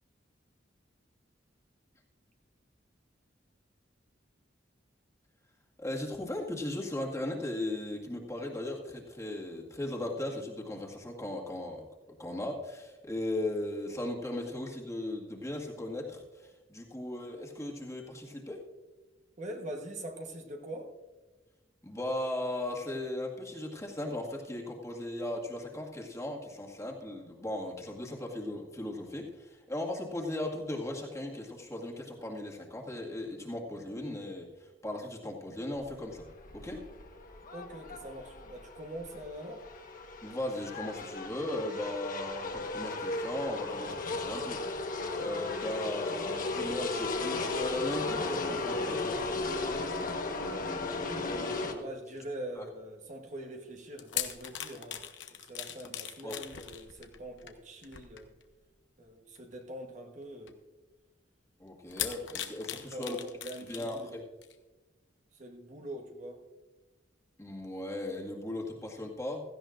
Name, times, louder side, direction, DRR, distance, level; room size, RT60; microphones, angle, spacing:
voice 1, 5.8-11.9 12.2-18.6 21.8-36.2 36.5-36.8 40.2-49.2 52.5-52.7 56.2-56.4 61.6-63.2 63.6-64.2 67.4-69.4, left 1 dB, 15° left, -1 dB, 1.9 m, -37 dB
voice 2, 19.4-20.9 37.5-39.6 51.0-58.3 59.0-60.6 62.7-64.3 65.3-66.4, right 1 dB, 40° right, 3 dB, 1.2 m, -43 dB
sound 1, 35.8-51.7, left 3 dB, 50° left, 1.3 m, -35 dB
sound 2, 53.8-58.6 59.4-59.6 60.5-60.6 61.9-64.1 64.4-64.5, left 10 dB, 75° left, 0.9 m, -40 dB
16.5 x 15.0 x 2.5 m, 1.2 s
head